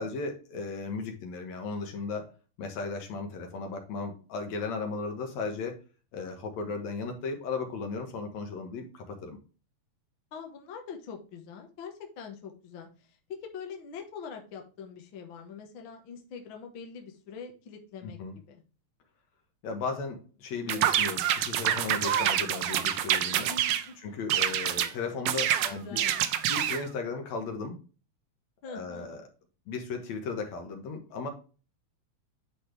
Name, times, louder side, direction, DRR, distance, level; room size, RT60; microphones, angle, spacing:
voice 1, 0.0-2.3 2.6-5.8 6.1-9.4 18.0-18.3 19.6-23.5 24.0-26.0 26.4-27.8 28.7-29.2 29.7-31.3, left 4 dB, 70° left, 4 dB, 2.5 m, -36 dB
voice 2, 10.3-18.6 23.5-24.1 25.6-26.2 28.6-29.1, left 6 dB, 50° left, 3 dB, 1.7 m, -44 dB
sound 1, 20.7-23.9 24.3-24.9 25.3-26.8, right 11 dB, 80° right, 1.3 m, -27 dB
10.0 x 4.3 x 3.4 m, 0.34 s
omnidirectional pair, 3.4 m